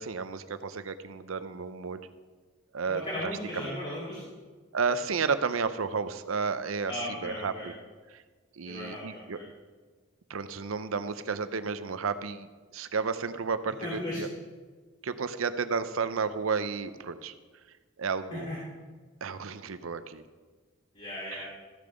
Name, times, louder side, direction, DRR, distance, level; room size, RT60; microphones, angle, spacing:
voice 1, 0.0-2.0 2.7-3.8 4.7-6.9 7.2-7.7 8.1-8.2 8.6-9.4 10.3-14.3 15.0-17.3 18.0-18.5 19.2-20.2 21.3-21.5, right 5 dB, 85° right, 12 dB, 0.6 m, -32 dB
voice 2, 2.9-4.2 6.9-7.7 8.6-9.4 13.8-14.2 18.3-18.6 20.9-21.5, left 1 dB, 35° left, -8 dB, 2.8 m, -36 dB
14.0 x 6.8 x 5.2 m, 1.4 s
head